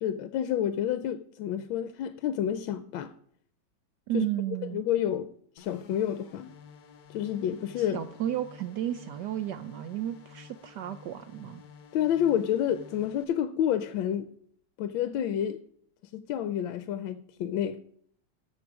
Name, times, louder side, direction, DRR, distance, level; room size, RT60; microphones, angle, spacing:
voice 1, 0.0-3.1 4.1-4.3 4.7-5.3 5.6-6.5 7.1-8.0 11.9-14.3 14.8-15.6 16.1-17.8, left 10 dB, 75° left, 1.3 m, -29 dB
voice 2, 4.1-4.8 7.8-11.6, right 11 dB, 75° right, 1.0 m, -33 dB
sound 1, 5.6-13.2, left 6 dB, 55° left, 1.1 m, -52 dB
14.0 x 6.8 x 4.7 m
omnidirectional pair, 2.3 m